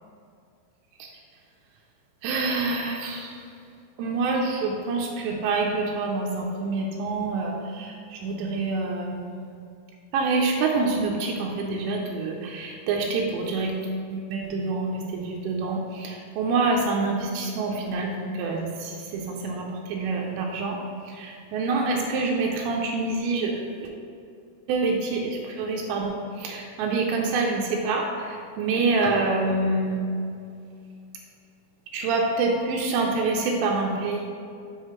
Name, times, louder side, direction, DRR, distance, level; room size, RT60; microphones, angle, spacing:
voice 1, 2.2-3.4 4.0-9.4 10.1-13.8 14.1-20.8 21.0-23.9 24.7-30.1 31.9-34.2, right 3 dB, 85° right, 0 dB, 2.7 m, -26 dB
7.3 x 5.7 x 3.1 m, 2.4 s
omnidirectional pair, 5.2 m